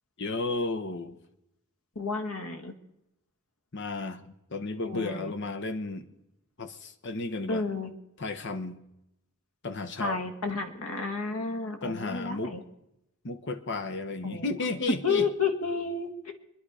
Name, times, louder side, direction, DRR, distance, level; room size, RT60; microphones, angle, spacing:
voice 1, 0.2-1.2 3.7-4.2 4.5-6.1 6.6-7.6 8.2-8.8 9.6-10.3 11.8-12.6 13.2-15.3, left 3 dB, 55° left, 9 dB, 1.1 m, -33 dB
voice 2, 2.0-2.7 4.8-5.3 7.5-7.9 10.0-12.6 14.2-14.4 15.0-16.3, left 4 dB, 75° left, 5 dB, 1.8 m, -31 dB
24.5 x 10.5 x 5.0 m, 0.84 s
head